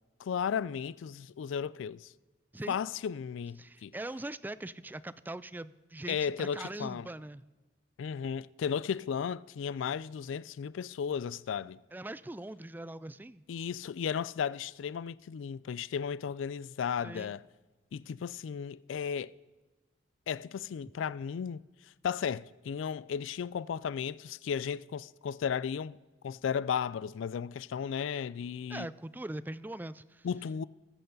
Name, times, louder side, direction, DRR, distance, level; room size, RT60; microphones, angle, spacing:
voice 1, 0.2-2.1 2.7-3.9 6.1-7.1 8.0-11.8 13.5-17.4 17.9-19.3 20.3-26.0 26.2-28.9 30.2-30.6, left 7 dB, 85° left, 0.3 m, -35 dB
voice 2, 3.6-7.4 11.9-13.4 17.0-17.3 28.7-30.3, right 1 dB, 10° right, 0.3 m, -41 dB
21.0 x 7.8 x 4.0 m
head